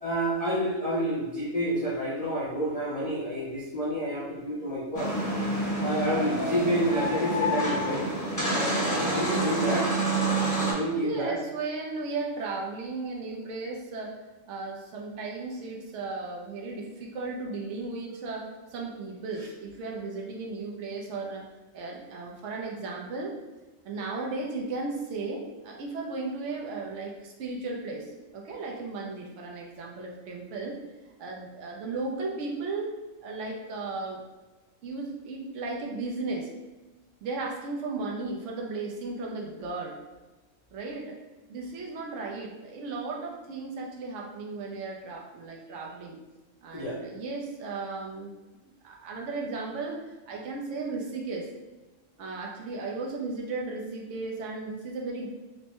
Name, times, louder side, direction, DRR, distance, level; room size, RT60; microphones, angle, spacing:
voice 1, 0.0-5.1 5.8-8.1 8.7-9.9 10.6-11.4 46.7-47.0, right 1 dB, 45° left, -7 dB, 0.5 m, -29 dB
sound 1, 4.9-10.7, right 1 dB, 15° left, 0.8 m, -28 dB
voice 2, 9.1-9.7 11.0-14.2 14.4-21.4 21.7-23.4 23.8-30.8 31.2-32.9 33.2-34.2 34.8-36.5 37.2-40.0 40.7-41.2 41.5-46.2 46.6-48.3 48.8-51.5 52.2-55.3, right 3 dB, 70° right, -1 dB, 1.0 m, -35 dB
4.4 x 2.1 x 2.9 m, 1.1 s
omnidirectional pair, 1.3 m